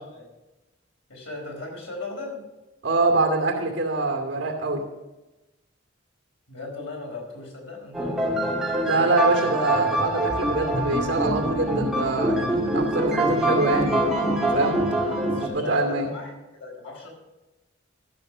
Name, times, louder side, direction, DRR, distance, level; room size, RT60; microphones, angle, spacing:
voice 1, 1.1-2.5 6.5-8.5 15.0-17.1, left 3 dB, 90° left, -1 dB, 4.6 m, -37 dB
voice 2, 2.8-4.8 8.8-14.2 14.5-14.8 15.3-16.1, right 2 dB, 65° right, 2 dB, 2.6 m, -24 dB
sound 1, 7.9-15.5, right 1 dB, 5° right, 1.8 m, -24 dB
13.5 x 6.9 x 6.6 m, 1.0 s
head